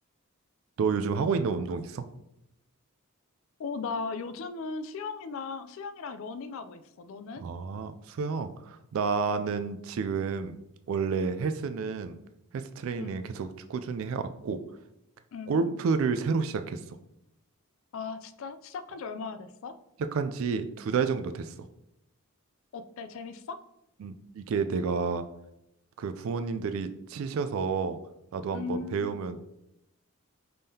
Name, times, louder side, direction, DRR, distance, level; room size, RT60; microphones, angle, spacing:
voice 1, 0.8-2.0 7.4-10.6 10.9-12.2 12.5-14.6 15.5-16.8 20.1-21.5 24.0-25.2 26.0-28.0 28.3-29.4, right 5 dB, 65° right, 9 dB, 0.3 m, -30 dB
voice 2, 3.6-7.4 13.0-13.1 15.3-15.7 17.9-19.7 22.7-23.6 28.5-29.2, left 4 dB, 60° left, 11 dB, 0.3 m, -37 dB
5.3 x 3.5 x 2.8 m, 0.83 s
head